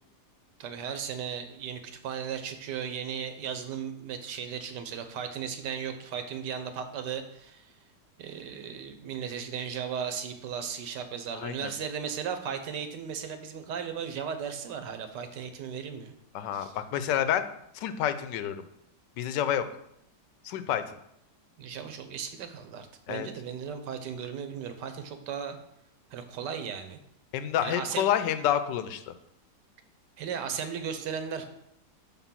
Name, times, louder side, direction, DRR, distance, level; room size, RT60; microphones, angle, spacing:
voice 1, 0.6-7.7 8.2-16.1 16.5-16.7 21.6-25.6 26.1-27.0 27.6-28.1 30.2-31.5, right 7 dB, 80° right, 8 dB, 1.4 m, -36 dB
voice 2, 11.3-11.7 16.3-17.5 17.7-18.6 19.2-19.6 20.4-20.8 23.1-23.3 27.3-29.1, left 10 dB, 85° left, 11 dB, 1.2 m, -28 dB
6.1 x 3.7 x 5.7 m, 0.76 s
omnidirectional pair, 1.9 m